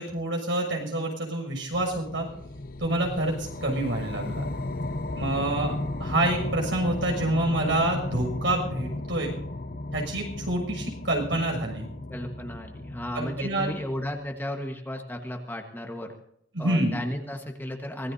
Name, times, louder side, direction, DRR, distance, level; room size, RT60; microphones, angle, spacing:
voice 1, 0.0-2.3 2.8-4.5 5.1-5.7 6.0-9.3 9.9-11.9 13.1-13.7 16.5-16.9, right 1 dB, 75° right, 1 dB, 6.8 m, -27 dB
sound 1, 1.7-14.3, left 2 dB, 45° left, 0.7 m, -35 dB
voice 2, 12.1-16.1 16.6-18.1, left 1 dB, 10° left, 2 dB, 1.4 m, -34 dB
24.5 x 19.0 x 2.8 m, 0.73 s
head